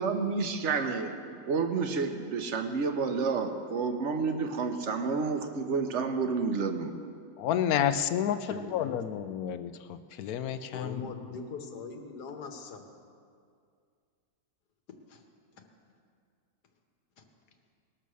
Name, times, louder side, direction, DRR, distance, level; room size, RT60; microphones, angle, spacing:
voice 1, 0.0-6.9, right 4 dB, 55° right, 6 dB, 1.1 m, -30 dB
voice 2, 7.4-11.0, left 9 dB, 70° left, 12 dB, 1.0 m, -30 dB
voice 3, 8.4-9.0 10.7-12.9 14.9-15.2 15.6-15.7 17.2-17.3, left 5 dB, 90° left, 5 dB, 1.7 m, -41 dB
19.5 x 6.8 x 6.2 m, 2.2 s
omnidirectional pair, 1.7 m